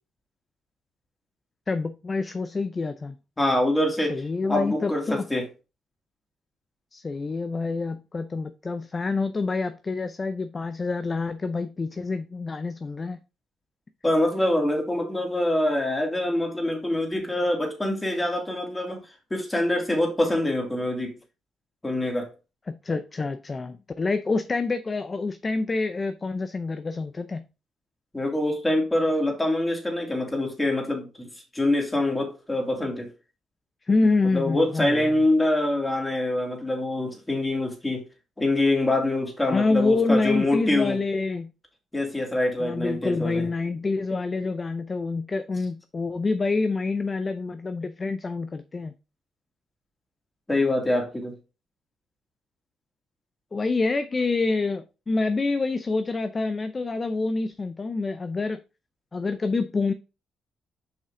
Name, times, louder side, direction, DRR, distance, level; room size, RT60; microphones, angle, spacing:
voice 1, 1.7-3.1 4.1-5.2 6.9-13.2 22.7-27.4 33.9-35.1 39.5-41.5 42.6-48.9 53.5-58.6 59.1-59.9, left 3 dB, 30° left, 0.6 m, -27 dB
voice 2, 3.4-4.2 4.5-5.4 14.0-19.0 19.3-21.1 21.8-22.3 28.1-31.3 31.5-33.1 34.2-38.0 38.4-41.0 41.9-43.5 50.5-51.4, left 1 dB, 15° left, 2.9 m, -25 dB
6.6 x 5.5 x 3.8 m
cardioid pair, 90°, 0 cm